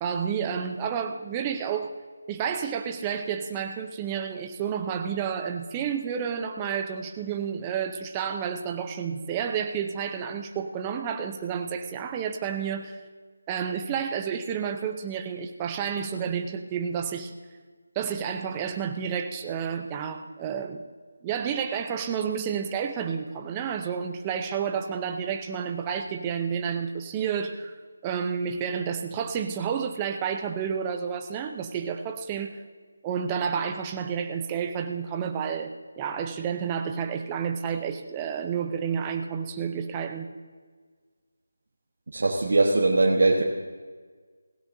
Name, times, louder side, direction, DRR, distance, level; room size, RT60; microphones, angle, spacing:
voice 1, 0.0-1.9 2.3-13.0 13.5-17.3 18.0-20.8 21.2-27.7 28.0-32.6 33.0-40.3, right 7 dB, 15° right, 5 dB, 0.7 m, -30 dB
voice 2, 42.1-43.4, right 2 dB, 60° right, -3 dB, 1.5 m, -21 dB
17.5 x 16.5 x 2.7 m, 1.5 s
figure-of-eight pair, 170°, 0 cm